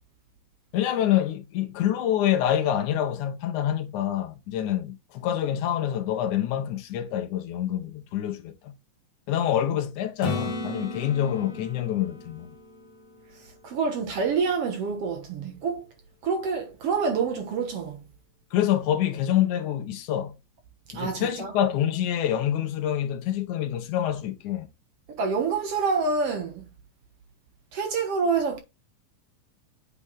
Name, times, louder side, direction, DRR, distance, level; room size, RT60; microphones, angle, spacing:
voice 1, 0.7-8.8 9.3-12.6 18.5-20.4 20.9-24.7, left 11 dB, 75° left, 2.5 m, -26 dB
Acoustic guitar / Strum, 10.2-14.0 18.8-18.9, left 3 dB, 20° left, 1.3 m, -35 dB
voice 2, 13.6-15.9 16.2-18.0 20.9-21.5 25.1-26.7 27.7-28.6, right 5 dB, 60° right, 2.0 m, -27 dB
8.6 x 4.1 x 3.8 m
omnidirectional pair, 3.6 m